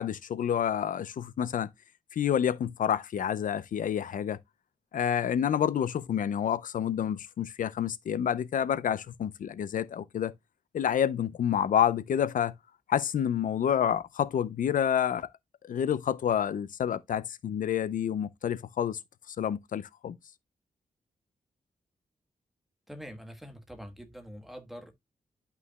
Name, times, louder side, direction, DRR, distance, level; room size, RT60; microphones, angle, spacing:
voice 1, 0.0-1.7 2.1-4.4 4.9-10.3 10.7-12.5 12.9-15.3 15.7-19.0 19.3-20.2, left 9 dB, 75° left, 0.5 m, -28 dB
voice 2, 22.9-24.9, equal, ahead, 1.4 m, -45 dB
11.5 x 5.6 x 2.2 m
wide cardioid pair, 160°, 14 cm